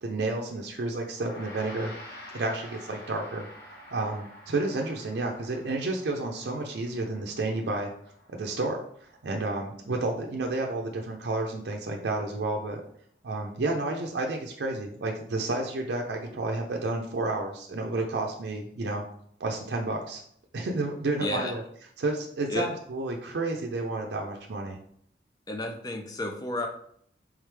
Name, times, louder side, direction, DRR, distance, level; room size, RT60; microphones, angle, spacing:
voice 1, 0.0-1.9 2.3-3.5 3.9-7.9 8.3-12.8 13.2-19.0 19.4-20.2 20.5-21.6 22.0-24.8, right 2 dB, 75° right, 1 dB, 0.4 m, -31 dB
Gong, 1.1-10.7, left 1 dB, 60° left, 1.0 m, -49 dB
voice 2, 21.2-21.5 22.5-22.7 25.5-26.7, left 2 dB, 20° left, 4 dB, 0.5 m, -32 dB
3.5 x 3.2 x 3.3 m, 0.66 s
head